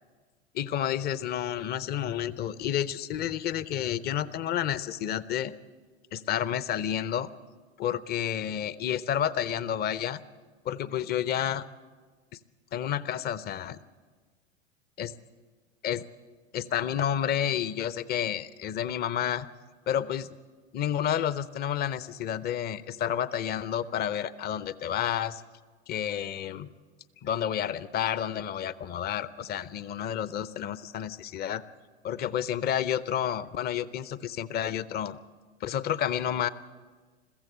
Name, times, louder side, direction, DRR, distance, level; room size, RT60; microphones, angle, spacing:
voice 1, 0.5-5.5 6.1-7.3 7.8-10.2 10.7-11.6 12.7-13.8 15.0-15.1 15.8-16.0 16.5-19.5 19.9-20.3 20.7-25.4 25.9-26.7 27.2-31.6 32.0-35.2 35.6-36.5, left 10 dB, 25° left, 17 dB, 0.7 m, -30 dB
21.5 x 15.0 x 8.6 m, 1.4 s
figure-of-eight pair, 90°, 35 cm